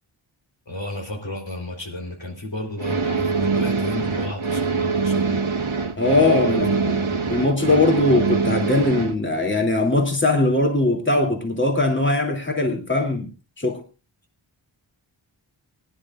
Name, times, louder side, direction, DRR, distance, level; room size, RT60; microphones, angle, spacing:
voice 1, 0.7-5.4 6.4-7.5, left 1 dB, 65° left, 2 dB, 4.0 m, -33 dB
sound 1, 2.8-9.1, right 4 dB, 85° right, 1.6 m, -23 dB
voice 2, 6.0-6.9 7.3-13.3 13.6-13.8, left 2 dB, 25° left, 2 dB, 3.0 m, -20 dB
23.5 x 11.0 x 2.5 m, 0.33 s
wide cardioid pair, 45°, 48 cm